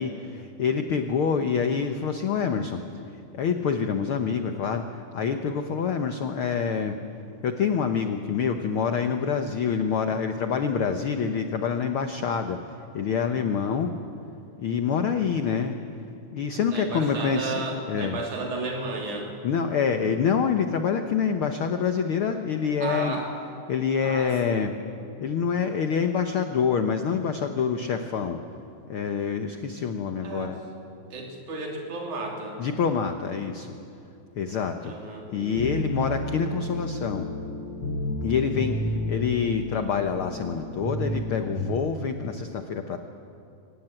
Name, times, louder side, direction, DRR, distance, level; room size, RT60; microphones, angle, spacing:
voice 1, 0.0-7.0 7.4-13.9 14.6-15.8 16.3-18.2 19.4-23.2 23.7-24.7 25.2-28.4 28.9-30.6 32.6-33.8 34.3-37.3 38.2-43.0, left 6 dB, 75° left, 7 dB, 1.2 m, -26 dB
voice 2, 16.7-19.4 22.8-23.3 24.0-24.6 30.2-30.5 31.1-32.6 34.8-35.3, right 3 dB, 65° right, 1 dB, 4.4 m, -33 dB
sound 1, 35.3-41.7, left 1 dB, 55° left, 4.8 m, -31 dB
24.0 x 18.5 x 8.9 m, 2.7 s
omnidirectional pair, 3.8 m